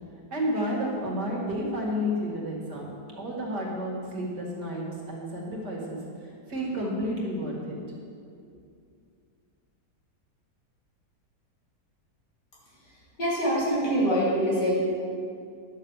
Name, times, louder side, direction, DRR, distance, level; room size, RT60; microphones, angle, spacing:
voice 1, 0.3-7.8, equal, 75° right, -3 dB, 2.9 m, -31 dB
voice 2, 13.2-14.8, equal, 85° left, -7 dB, 3.6 m, -24 dB
11.0 x 6.8 x 7.3 m, 2.3 s
omnidirectional pair, 1.8 m